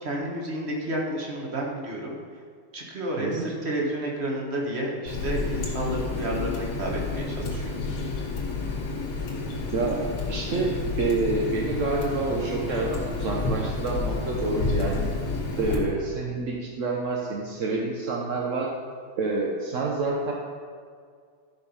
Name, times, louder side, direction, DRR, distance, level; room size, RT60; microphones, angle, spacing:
voice 1, 0.0-2.1 2.7-7.8, right 1 dB, 30° right, -1 dB, 1.6 m, -30 dB
Water tap faucet, 5.1-15.8, left 3 dB, 85° left, 2.4 m, -30 dB
voice 2, 9.7-15.0 15.6-18.7 19.2-20.3, right 3 dB, 55° right, -2 dB, 0.9 m, -28 dB
13.0 x 5.1 x 5.5 m, 2.1 s
omnidirectional pair, 2.4 m